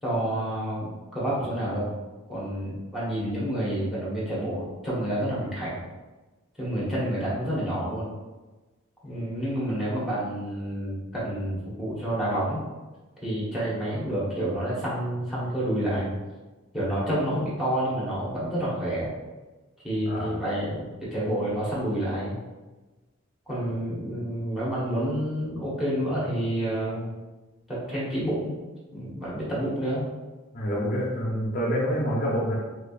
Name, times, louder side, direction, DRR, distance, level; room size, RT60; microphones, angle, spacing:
voice 1, 0.0-1.9 2.3-5.8 6.6-8.1 9.0-12.6 13.2-16.1 16.7-19.1 19.8-22.4 23.5-27.1 27.7-28.5 28.9-30.1, right 1 dB, ahead, -8 dB, 1.0 m, -29 dB
voice 2, 20.0-20.3 30.5-32.6, equal, 40° left, -5 dB, 0.6 m, -27 dB
3.1 x 3.0 x 2.4 m, 1.2 s
head